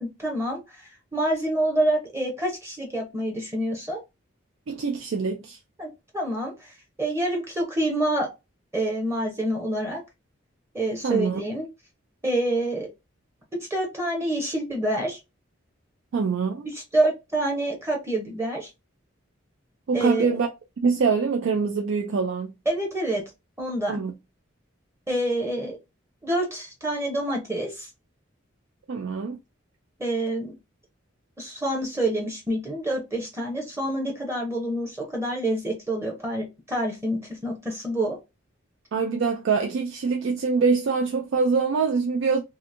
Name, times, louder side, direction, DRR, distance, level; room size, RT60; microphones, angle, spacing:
voice 1, 0.0-4.0 5.8-8.3 8.7-10.0 10.7-11.7 12.2-12.9 13.5-15.2 16.9-18.7 19.9-20.3 22.7-23.2 23.6-24.0 25.1-25.8 26.2-27.9 30.0-30.5 31.4-38.2, right 1 dB, 15° right, 0.7 m, -27 dB
voice 2, 4.7-5.6 11.0-11.4 16.1-16.7 19.9-20.5 20.8-22.5 23.9-24.1 28.9-29.4 38.9-42.4, right 5 dB, 65° right, 0.4 m, -24 dB
2.8 x 2.5 x 2.5 m
head